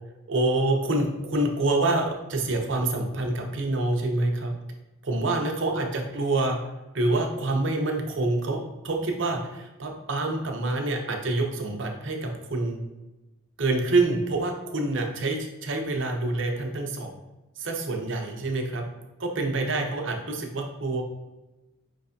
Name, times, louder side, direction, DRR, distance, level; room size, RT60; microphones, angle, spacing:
voice 1, 0.3-4.5 5.0-6.6 6.9-12.8 13.6-17.1 17.6-18.8 19.2-21.0, right 2 dB, 60° right, 2 dB, 0.7 m, -26 dB
5.2 x 3.2 x 2.7 m, 1.1 s
head